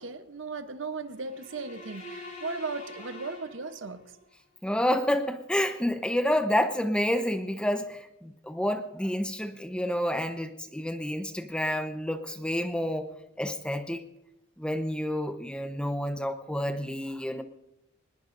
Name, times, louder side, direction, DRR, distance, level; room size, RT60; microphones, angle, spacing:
voice 1, 0.0-4.0, right 4 dB, 75° right, 0.9 m, -37 dB
sound 1, 1.2-4.2, left 1 dB, 40° left, 6.2 m, -45 dB
voice 2, 4.6-13.1 13.4-14.0 14.6-17.4, equal, 5° left, 0.8 m, -29 dB
24.0 x 20.0 x 2.6 m
head